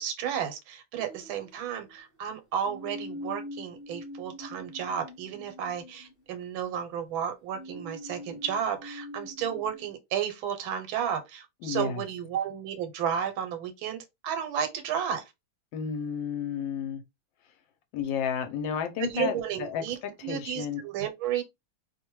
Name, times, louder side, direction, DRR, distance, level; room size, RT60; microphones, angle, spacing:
voice 1, 0.0-15.2 19.0-20.0 20.2-21.4, right 8 dB, 85° right, 1.5 m, -32 dB
sound 1, 1.0-2.0 2.6-6.6 7.5-9.9, left 1 dB, 35° left, 1.1 m, -44 dB
voice 2, 11.6-12.0 15.7-17.0 17.9-20.8, left 8 dB, 75° left, 1.2 m, -32 dB
3.2 x 2.1 x 3.0 m
omnidirectional pair, 2.2 m